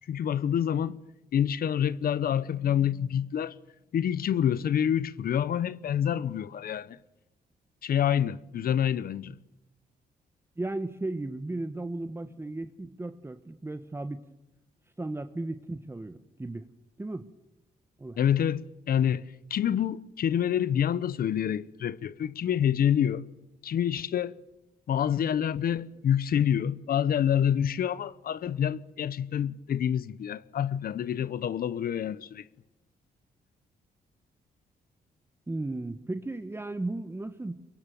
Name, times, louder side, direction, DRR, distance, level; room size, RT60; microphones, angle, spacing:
voice 1, 0.1-1.0 1.3-3.6 3.9-7.0 7.8-9.4 18.2-23.3 23.6-24.3 24.9-32.5, left 9 dB, 65° left, 0.9 m, -27 dB
voice 2, 10.6-14.2 15.0-16.6 17.0-17.3 18.0-18.2 35.5-37.5, right 2 dB, 15° right, 1.2 m, -35 dB
24.0 x 23.0 x 9.2 m
cardioid pair, 80°, 16 cm